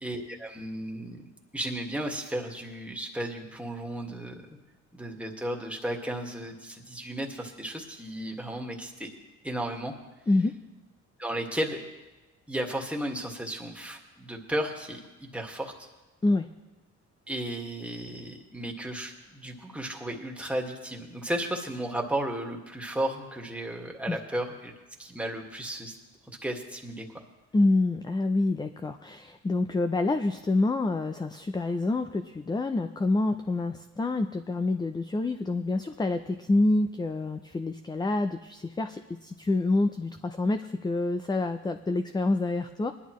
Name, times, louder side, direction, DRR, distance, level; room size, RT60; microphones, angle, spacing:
voice 1, 0.0-4.5 4.9-9.1 9.4-9.9 11.2-11.8 12.5-15.9 17.3-24.7 25.0-25.9 26.3-27.1, right 1 dB, 5° right, 0 dB, 1.9 m, -34 dB
voice 2, 27.5-42.9, left 2 dB, 15° left, 8 dB, 0.5 m, -27 dB
20.0 x 11.0 x 3.1 m, 1.1 s
cardioid pair, 90°, 30 cm